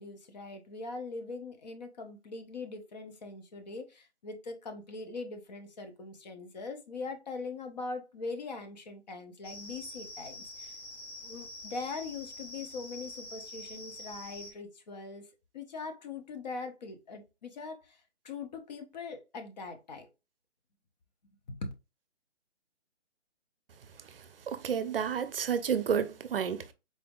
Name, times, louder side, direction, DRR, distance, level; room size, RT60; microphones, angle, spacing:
voice 1, 0.0-10.8 11.2-15.3 15.5-20.1 21.5-21.7, left 3 dB, 40° left, 0.8 m, -41 dB
sound 1, 9.4-14.5, left 1 dB, 25° left, 0.5 m, -46 dB
voice 2, 24.1-26.7, right 7 dB, 55° right, 0.6 m, -31 dB
4.1 x 3.4 x 2.3 m
hypercardioid pair, 150°, 33 cm